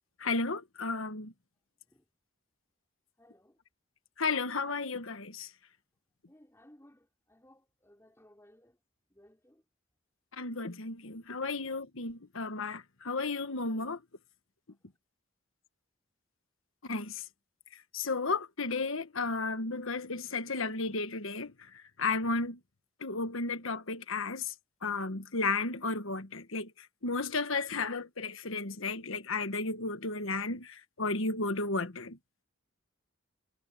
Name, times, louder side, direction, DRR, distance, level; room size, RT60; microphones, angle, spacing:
voice 1, 0.2-1.3 4.2-5.5 10.3-14.0 16.8-17.2 17.9-21.5 22.0-22.6 23.0-24.5 24.8-32.2, left 3 dB, 70° left, 1.4 m, -33 dB
voice 2, 3.2-3.6 6.3-8.8 9.1-9.6, left 1 dB, 10° left, 4.2 m, -60 dB
head